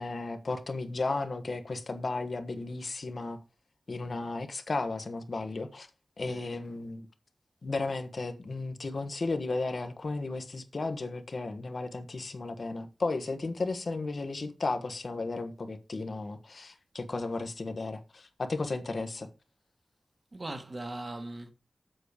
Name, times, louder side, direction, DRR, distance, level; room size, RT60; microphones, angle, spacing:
voice 1, 0.0-3.4 3.9-5.9 6.2-7.1 7.6-19.3, left 3 dB, 60° left, 1.3 m, -34 dB
voice 2, 20.3-21.5, right 2 dB, 40° right, 1.5 m, -39 dB
7.9 x 6.5 x 5.1 m
wide cardioid pair, 105°, 0 cm